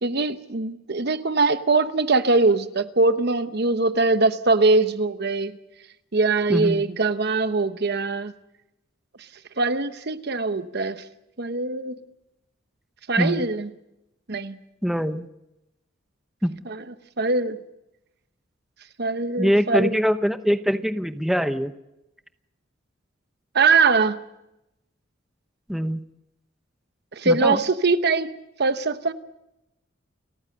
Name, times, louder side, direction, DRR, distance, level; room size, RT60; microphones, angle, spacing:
voice 1, 0.0-5.5 6.1-8.3 9.6-11.0 11.4-12.0 13.1-13.7 14.3-14.6 16.7-16.8 17.2-17.6 19.0-20.0 23.5-24.2 27.1-28.3 28.6-29.1, right 3 dB, 55° right, 11 dB, 1.0 m, -22 dB
voice 2, 6.5-6.8 13.2-13.4 14.8-15.3 16.4-16.6 19.4-21.7 25.7-26.0 27.2-27.6, equal, ahead, 9 dB, 0.8 m, -23 dB
30.0 x 14.5 x 6.6 m, 0.89 s
head